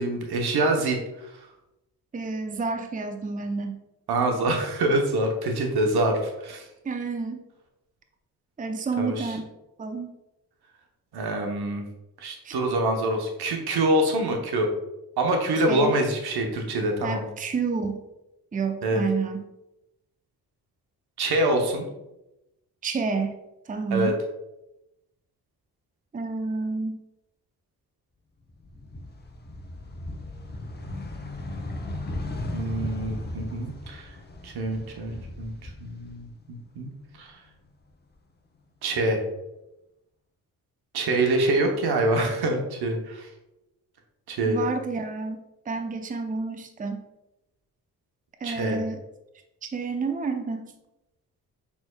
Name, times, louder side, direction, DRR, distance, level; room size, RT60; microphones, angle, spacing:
voice 1, 0.0-1.4 4.1-6.6 9.0-9.3 11.1-11.8 12.2-14.7 15.2-17.3 18.8-19.0 21.2-21.9 23.9-24.1 32.5-34.1 34.4-36.9 37.2-37.3 38.8-39.2 40.9-43.3 44.3-44.6 48.4-48.8, right 1 dB, 70° right, 3 dB, 0.9 m, -25 dB
voice 2, 2.1-3.8 6.8-7.4 8.6-9.4 9.8-10.1 12.4-12.5 15.7-15.9 17.0-18.1 18.5-19.5 22.8-23.4 23.7-24.2 26.1-27.0 44.5-45.4 45.7-47.0 48.4-49.0 49.6-50.7, right 4 dB, 20° right, 6 dB, 0.6 m, -29 dB
sound 1, 28.5-36.6 37.0-38.2, left 2 dB, 25° left, 0.9 m, -37 dB
6.1 x 3.4 x 2.3 m, 0.92 s
supercardioid pair, 45°, 40 cm